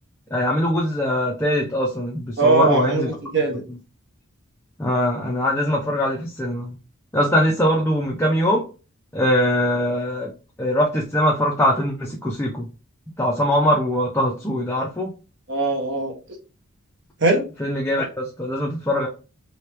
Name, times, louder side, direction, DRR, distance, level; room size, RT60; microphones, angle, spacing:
voice 1, 0.3-3.1 4.8-6.8 7.1-8.6 9.1-10.3 10.6-12.7 13.2-15.1 17.6-19.1, equal, 10° left, -2 dB, 0.5 m, -22 dB
voice 2, 2.4-3.6 15.5-16.1 17.2-17.4, right 3 dB, 55° right, 1 dB, 1.2 m, -20 dB
3.1 x 2.9 x 3.2 m, 0.33 s
head